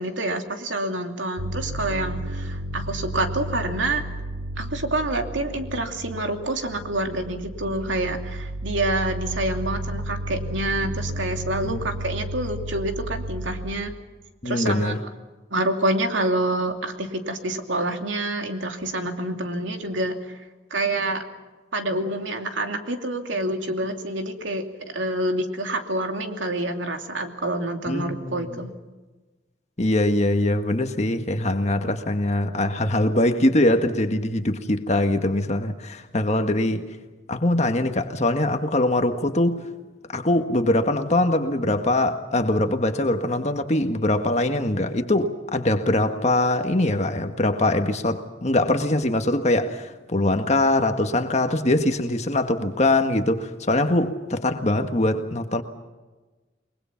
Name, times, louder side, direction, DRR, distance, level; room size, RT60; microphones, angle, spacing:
voice 1, 0.0-4.0 4.6-13.9 14.4-15.1 15.5-20.4 20.7-21.2 21.7-28.7, right 1 dB, 85° right, 2.7 m, -27 dB
sound 1, 1.4-13.8, right 1 dB, 65° right, 3.8 m, -33 dB
voice 2, 14.4-15.0 27.9-28.6 29.8-36.9 37.3-39.6 40.1-55.6, left 1 dB, 35° left, 1.6 m, -22 dB
29.0 x 22.5 x 5.9 m
head